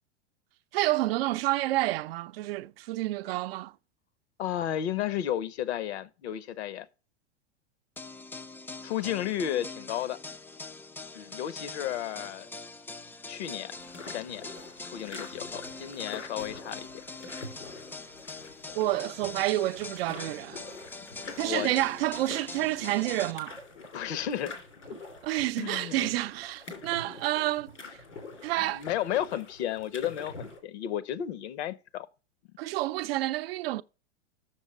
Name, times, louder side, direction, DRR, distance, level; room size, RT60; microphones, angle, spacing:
voice 1, 0.7-3.7 18.8-20.6 21.4-23.6 25.2-27.7 28.4-28.8 32.6-33.8, right 16 dB, 55° right, 0.6 m, -29 dB
voice 2, 4.4-6.9 8.8-10.2 11.1-12.5 13.3-13.7 14.1-14.5 14.8-16.9 21.2-21.7 23.9-24.6 25.6-26.1 28.6-32.1, left 11 dB, 65° left, 1.0 m, -33 dB
sound 1, 8.0-23.3, left 3 dB, 5° left, 0.4 m, -43 dB
sound 2, 13.8-30.6, left 3 dB, 85° left, 3.3 m, -45 dB
7.3 x 6.4 x 6.1 m
hypercardioid pair, 100°, 35 cm